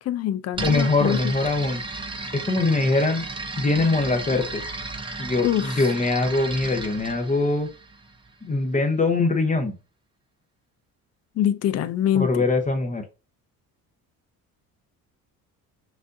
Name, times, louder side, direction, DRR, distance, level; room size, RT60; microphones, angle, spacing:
voice 1, 0.0-1.3 5.4-5.9 11.4-12.4, left 11 dB, 45° left, 0.5 m, -24 dB
sound 1, 0.5-8.3, right 3 dB, 15° right, 0.7 m, -34 dB
voice 2, 0.6-1.8 2.4-3.2 3.6-4.6 5.2-7.7 8.4-9.7 12.1-13.0, left 3 dB, 20° left, 0.9 m, -22 dB
6.1 x 2.6 x 2.6 m
cardioid pair, 95°, 36 cm